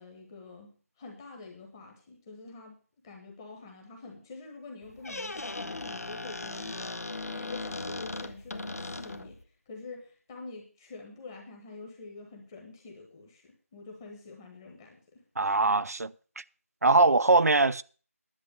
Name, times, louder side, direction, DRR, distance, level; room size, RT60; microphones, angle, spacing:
voice 1, 0.0-9.4 9.7-15.2, left 3 dB, 10° left, 1.2 m, -47 dB
Squeak, 4.8-9.4, left 2 dB, 85° left, 1.3 m, -38 dB
voice 2, 15.4-16.4 16.8-17.8, right 3 dB, 85° right, 0.6 m, -22 dB
11.0 x 7.6 x 6.8 m
figure-of-eight pair, 170°, 8 cm